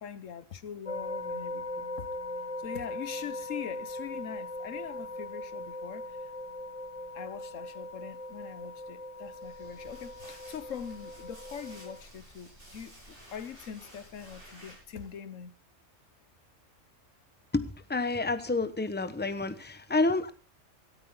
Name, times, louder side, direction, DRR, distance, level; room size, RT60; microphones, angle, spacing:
voice 1, 0.0-2.1 2.6-6.2 7.1-15.5, left 8 dB, 80° left, 1.3 m, -42 dB
sound 1, 0.9-12.0, left 1 dB, 30° left, 0.8 m, -40 dB
sound 2, 9.2-15.2, equal, 45° right, 6.4 m, -53 dB
voice 2, 17.5-20.3, left 3 dB, 10° left, 1.0 m, -29 dB
17.5 x 13.5 x 3.8 m
omnidirectional pair, 1.3 m